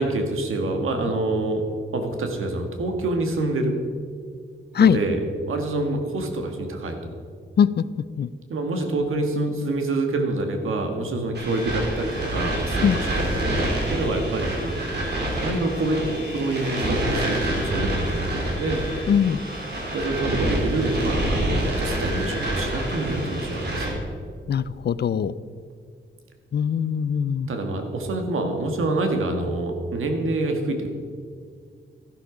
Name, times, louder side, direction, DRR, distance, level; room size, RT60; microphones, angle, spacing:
voice 1, 0.0-1.7 1.9-3.8 4.8-7.1 8.5-15.0 15.4-18.8 19.9-24.0 27.5-30.9, right 2 dB, 90° right, 4 dB, 1.8 m, -26 dB
sound 1, 11.3-23.9, right 1 dB, 55° right, 3.4 m, -27 dB
voice 2, 19.1-19.4 24.5-25.3 26.5-27.5, left 7 dB, 55° left, 16 dB, 0.5 m, -21 dB
13.0 x 11.5 x 5.1 m, 2.1 s
wide cardioid pair, 120°, 20 cm